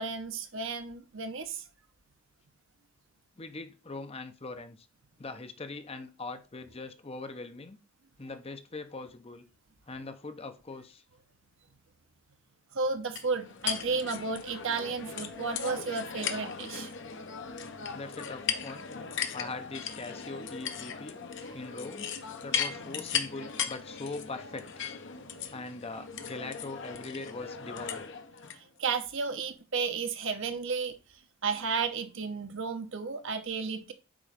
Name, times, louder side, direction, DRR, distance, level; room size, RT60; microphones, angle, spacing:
voice 1, 0.0-1.6 12.7-16.9 21.5-21.6 25.3-25.4 28.8-30.9 31.4-33.9, right 4 dB, 60° right, 0.9 m, -33 dB
voice 2, 3.4-4.9 5.2-7.8 8.2-9.5 9.9-11.0 17.9-18.9 19.3-21.2 21.5-22.1 22.4-24.9 25.5-28.0 31.6-31.7, left 3 dB, 25° left, 0.6 m, -41 dB
sound 1, 13.2-28.6, left 7 dB, 55° left, 0.9 m, -37 dB
8.8 x 3.1 x 5.0 m
head